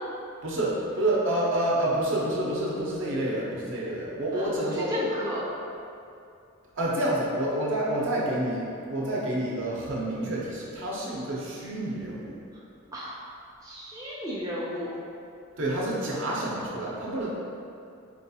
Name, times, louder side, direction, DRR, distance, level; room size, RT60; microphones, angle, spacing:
voice 1, 0.4-4.9 6.8-12.4 15.6-17.4, right 1 dB, 60° right, -5 dB, 0.7 m, -28 dB
voice 2, 4.3-5.4 12.9-13.2 13.6-14.9, equal, 15° right, -7 dB, 0.4 m, -33 dB
4.5 x 2.3 x 2.7 m, 2.5 s
head